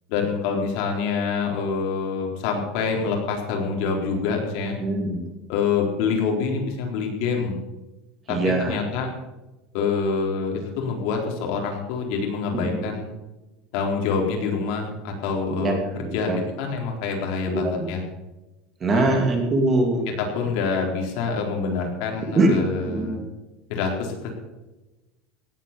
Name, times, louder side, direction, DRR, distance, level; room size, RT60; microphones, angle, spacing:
voice 1, 0.1-4.8 5.5-7.6 8.3-9.1 9.7-13.1 13.7-18.0 18.9-19.2 20.2-23.2 23.7-24.3, left 5 dB, 60° left, 1 dB, 4.1 m, -26 dB
voice 2, 4.8-5.3 8.3-8.8 12.5-12.7 15.5-16.4 17.5-17.9 18.8-20.1 22.3-22.6 22.9-23.2, right 2 dB, 20° right, 3 dB, 2.7 m, -23 dB
17.5 x 8.7 x 6.9 m, 1.1 s
cardioid pair, 165°, 0 cm